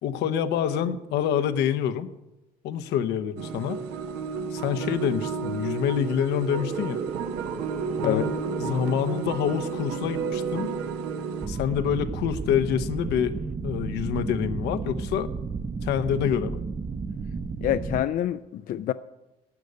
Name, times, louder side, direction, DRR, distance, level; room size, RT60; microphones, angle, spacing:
voice 1, 0.0-2.1 2.6-3.8 4.5-7.0 8.0-8.3 8.6-10.7 11.5-13.4 13.6-15.3 15.8-16.6, left 9 dB, 80° left, 10 dB, 0.9 m, -26 dB
sound 1, 3.4-11.5, right 5 dB, 85° right, 1.0 m, -32 dB
sound 2, 6.3-13.5, right 5 dB, 45° right, 1.0 m, -39 dB
sound 3, 11.4-18.0, right 4 dB, 25° right, 0.6 m, -33 dB
voice 2, 17.6-18.9, left 12 dB, 55° left, 12 dB, 0.4 m, -26 dB
12.0 x 6.7 x 9.6 m, 0.95 s
cardioid pair, 110°, 17 cm